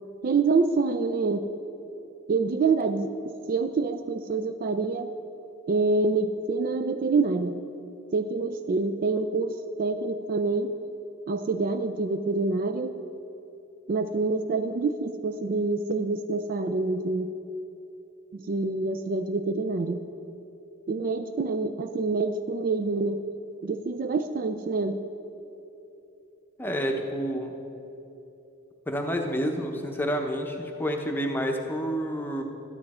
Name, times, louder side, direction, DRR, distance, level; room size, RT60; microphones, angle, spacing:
voice 1, 0.2-1.4 2.3-5.1 5.7-7.6 8.1-10.7 11.3-12.9 13.9-17.3 18.3-20.0 20.9-23.2 23.6-25.0, right 3 dB, 40° right, 9 dB, 0.3 m, -26 dB
voice 2, 26.6-27.5 28.9-32.4, equal, 10° left, 3 dB, 0.7 m, -29 dB
12.5 x 10.0 x 4.2 m, 3.0 s
head